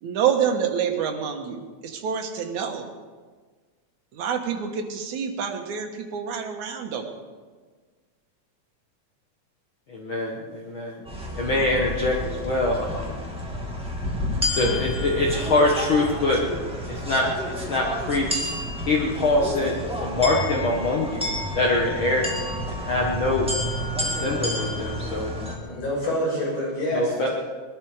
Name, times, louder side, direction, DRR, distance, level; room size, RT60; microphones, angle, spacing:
voice 1, 0.0-2.9 4.1-7.1, right 7 dB, 75° right, 4 dB, 2.8 m, -27 dB
voice 2, 9.9-11.0 11.3-13.2 14.6-16.4 16.8-18.4 18.9-21.3 21.5-22.3 22.7-23.5 24.1-25.3 26.9-27.3, left 2 dB, 50° left, -1 dB, 1.9 m, -24 dB
sound 1, 11.0-25.5, equal, ahead, 1.8 m, -30 dB
voice 3, 25.6-27.3, equal, 85° left, -5 dB, 7.6 m, -27 dB
20.5 x 12.5 x 5.0 m, 1.4 s
omnidirectional pair, 3.5 m